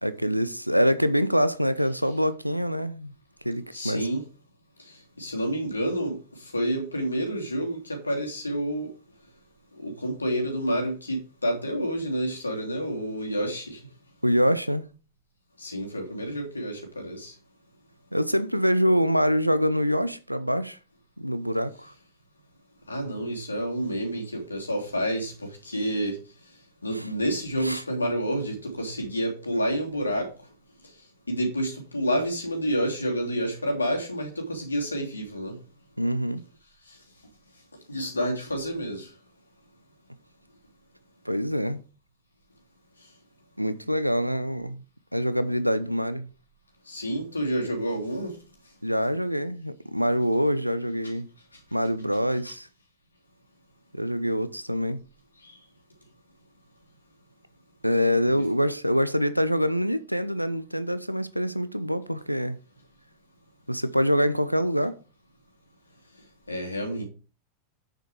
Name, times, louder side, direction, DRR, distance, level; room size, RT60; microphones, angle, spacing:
voice 1, 0.0-3.1 3.4-4.0 14.2-14.8 18.1-20.8 21.2-21.9 26.9-27.0 27.6-27.8 36.0-36.4 41.3-41.8 43.6-44.8 45.1-46.3 48.8-51.3 51.7-52.7 53.9-55.0 57.8-62.6 63.7-65.0, equal, 90° right, 0.7 m, -25 dB
voice 2, 3.7-4.2 5.2-8.9 9.8-13.8 15.6-17.3 22.9-26.2 26.8-30.3 31.3-35.5 37.9-39.1 46.9-48.3 52.4-52.5 55.4-55.5 58.3-58.4 66.5-67.0, equal, 80° left, 3.2 m, -29 dB
9.0 x 6.9 x 4.8 m
figure-of-eight pair, 90°, 0 cm